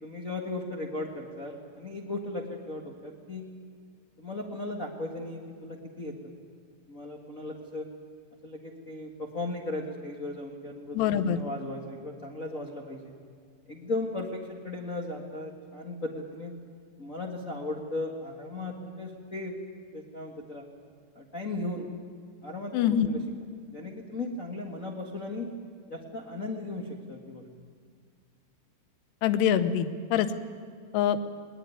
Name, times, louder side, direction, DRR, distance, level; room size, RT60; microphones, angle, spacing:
voice 1, 0.0-3.5 4.2-6.3 6.9-7.9 8.4-13.1 13.7-16.5 17.0-19.6 19.9-20.6 21.1-21.9 22.4-23.2 23.7-25.5 25.9-27.4, left 2 dB, 60° left, -1 dB, 0.8 m, -36 dB
voice 2, 10.9-11.4 22.7-23.1 29.2-30.3 30.9-31.2, left 9 dB, 85° left, 11 dB, 3.1 m, -24 dB
20.0 x 20.0 x 9.7 m, 2.1 s
omnidirectional pair, 4.7 m